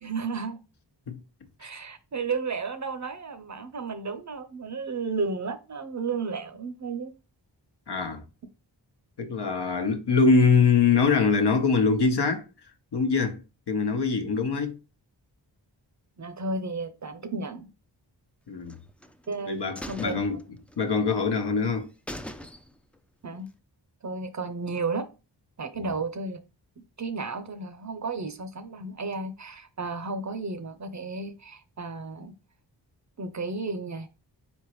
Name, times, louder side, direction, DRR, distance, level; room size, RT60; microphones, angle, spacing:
voice 1, 0.0-0.6 1.6-7.1 16.2-17.7 19.3-20.2 23.2-23.5 24.0-25.1 25.6-26.4 27.0-32.3 33.2-34.1, right 4 dB, 40° right, 0.6 m, -33 dB
voice 2, 7.9-8.2 9.2-12.5 12.9-13.4 13.7-14.8 18.5-18.8 19.5-20.4 20.8-21.9 25.8-25.9, left 5 dB, 60° left, 1.0 m, -23 dB
sound 1, 18.7-19.4 19.8-21.0 21.4-21.5 21.8-21.9 22.1-23.0 23.3-23.4, equal, 5° left, 0.4 m, -41 dB
4.2 x 3.5 x 3.0 m
cardioid pair, 45°, 45 cm